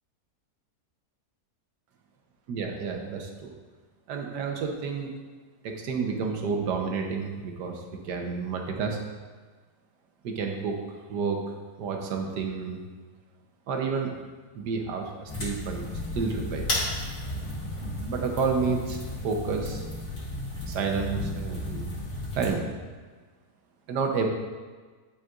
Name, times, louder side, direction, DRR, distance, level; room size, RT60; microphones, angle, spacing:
voice 1, 2.5-3.5 4.1-5.1 5.6-9.0 10.2-10.8 11.1-11.4 11.8-12.8 13.7-14.1 14.5-16.7 17.8-19.8 20.5-22.0 22.3-22.7 23.9-24.3, right 5 dB, 85° right, 2 dB, 1.4 m, -30 dB
sound 1, 15.3-22.5, left 1 dB, 50° left, 2.6 m, -34 dB
10.5 x 5.0 x 2.5 m, 1.4 s
omnidirectional pair, 1.7 m